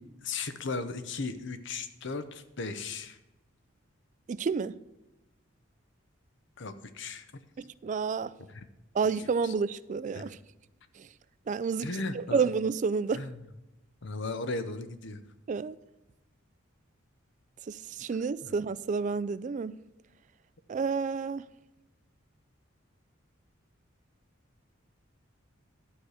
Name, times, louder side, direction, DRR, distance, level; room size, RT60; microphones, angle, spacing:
voice 1, 0.2-3.2 6.6-7.3 8.5-8.6 9.4-9.5 10.2-10.3 11.8-12.5 13.1-13.4 14.0-15.2 18.4-18.5, left 3 dB, 60° left, 0.8 m, -36 dB
voice 2, 4.3-4.7 7.6-8.3 8.9-10.4 11.5-11.9 12.1-13.2 15.5-15.8 17.7-19.8 20.7-21.4, right 5 dB, 35° right, 0.3 m, -30 dB
11.5 x 4.9 x 7.9 m
head